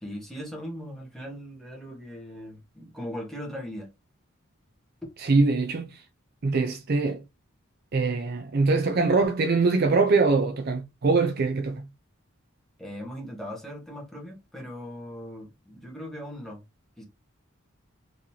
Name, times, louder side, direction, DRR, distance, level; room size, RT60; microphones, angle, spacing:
voice 1, 0.0-3.9 12.8-16.6 17.0-17.1, equal, ahead, 1.3 m, -39 dB
voice 2, 5.2-6.0 6.4-7.2 7.9-11.9, right 3 dB, 45° right, 0.5 m, -23 dB
3.8 x 3.1 x 2.8 m
head